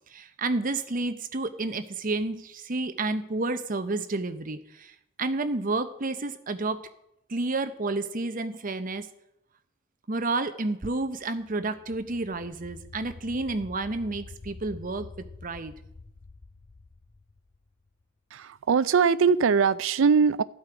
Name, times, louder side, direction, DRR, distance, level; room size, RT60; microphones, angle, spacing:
voice 1, 0.1-4.9 5.2-6.8 7.3-9.1 10.1-15.1 15.4-15.7, right 2 dB, 40° right, 10 dB, 0.8 m, -30 dB
sound 1, 11.2-18.0, left 3 dB, 35° left, 0.5 m, -47 dB
voice 2, 18.3-20.4, right 5 dB, 70° right, 16 dB, 0.4 m, -21 dB
13.5 x 8.1 x 5.0 m, 0.81 s
head